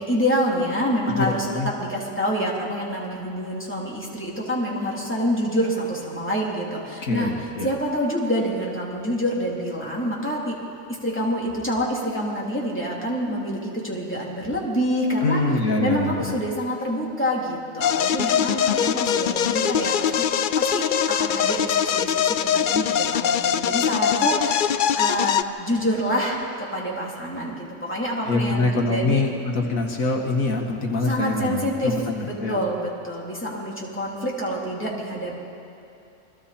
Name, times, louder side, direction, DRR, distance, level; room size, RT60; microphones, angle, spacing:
voice 1, 0.0-1.5 1.8-10.5 11.0-15.4 15.8-20.3 20.5-20.8 21.2-29.2 31.0-31.9 32.2-35.3, equal, 10° left, -4 dB, 3.3 m, -27 dB
voice 2, 1.1-1.7 7.0-7.7 15.2-16.4 28.3-32.6, left 2 dB, 85° left, 1 dB, 2.1 m, -24 dB
sound 1, 17.8-25.4, left 8 dB, 60° left, 0.5 m, -22 dB
28.5 x 22.0 x 4.3 m, 2.7 s
omnidirectional pair, 1.4 m